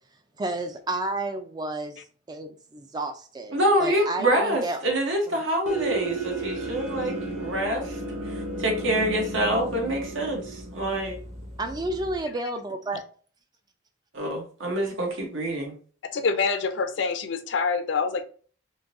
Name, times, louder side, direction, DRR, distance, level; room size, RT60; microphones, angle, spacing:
voice 1, 0.4-2.0 2.3-4.8 5.3-5.4 11.6-13.0, right 2 dB, 20° right, 0.3 m, -31 dB
voice 2, 3.5-8.0 8.3-11.2 14.1-15.7, right 1 dB, 75° right, 1.1 m, -26 dB
sound 1, 5.7-12.2, right 2 dB, 35° right, 0.9 m, -34 dB
voice 3, 16.1-18.2, left 5 dB, 65° left, 0.5 m, -26 dB
3.7 x 2.6 x 2.5 m
head